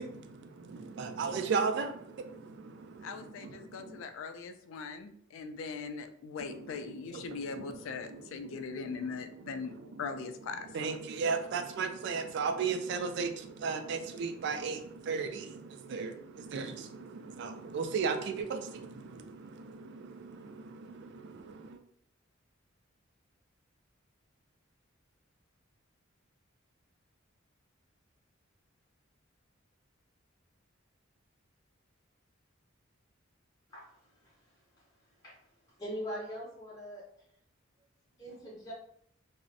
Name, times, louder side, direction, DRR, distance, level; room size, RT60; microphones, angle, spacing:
voice 1, 0.0-4.0 6.4-6.6 7.1-9.1 9.3-10.0 10.7-21.8, right 5 dB, 55° right, 7 dB, 0.3 m, -36 dB
voice 2, 3.0-10.7 11.0-11.1, left 5 dB, 70° left, 8 dB, 0.3 m, -41 dB
voice 3, 35.8-37.0 38.2-38.7, equal, 15° left, -8 dB, 0.6 m, -41 dB
2.5 x 2.0 x 2.6 m, 0.68 s
head